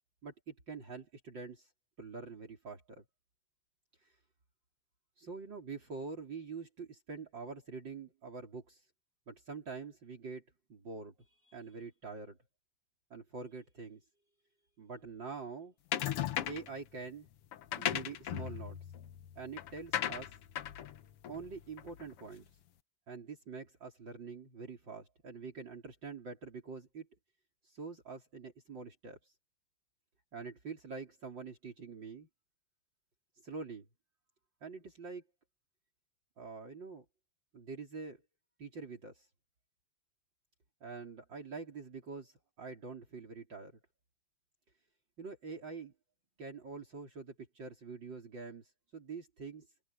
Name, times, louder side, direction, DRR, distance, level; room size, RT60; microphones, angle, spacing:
voice 1, 0.2-1.7 2.0-3.0 4.0-4.2 5.2-8.8 9.3-10.4 10.7-12.4 13.1-14.0 14.8-15.7 16.5-17.3 17.8-18.8 19.4-20.4 21.3-22.4 23.1-27.1 27.6-29.3 30.3-32.3 33.4-33.9 34.6-35.2 36.4-37.0 37.5-38.2 38.6-39.3 40.8-43.7 45.2-45.9 46.4-49.7, right 4 dB, 55° right, 4.4 m, -45 dB
sound 1, 15.9-16.8 17.5-22.2, left 11 dB, 85° left, 2.0 m, -37 dB
open air
omnidirectional pair, 2.4 m